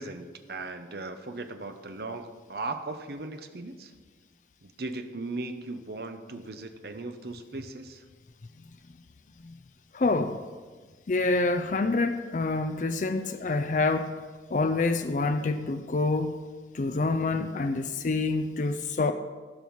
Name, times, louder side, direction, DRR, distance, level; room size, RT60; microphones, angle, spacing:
voice 1, 0.0-3.9 4.6-8.0, right 2 dB, 55° right, 7 dB, 0.8 m, -38 dB
voice 2, 9.9-10.4 11.1-14.2 14.5-16.4 16.7-19.1, left 3 dB, 40° left, 8 dB, 0.4 m, -27 dB
16.0 x 5.5 x 4.7 m, 1.4 s
head